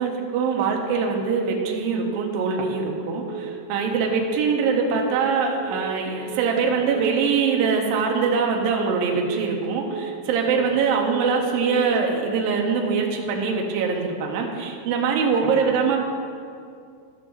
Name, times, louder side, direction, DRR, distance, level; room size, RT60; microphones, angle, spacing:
voice 1, 0.0-16.0, right 5 dB, 85° right, 1 dB, 2.6 m, -23 dB
Telephone, 1.4-1.7 2.0-2.3 2.6-2.9 3.2-3.5 3.8-4.1 4.4-4.7 5.0-5.3 5.6-5.9 6.2-6.5 6.8-7.1 7.4-7.7 8.0-8.3 8.6-8.9 9.2-9.5 9.8-10.1 10.4-10.7 11.0-11.3 11.6-11.9 12.2-12.5, right 8 dB, 55° right, 3.0 m, -35 dB
13.5 x 6.2 x 3.0 m, 2.3 s
omnidirectional pair, 4.1 m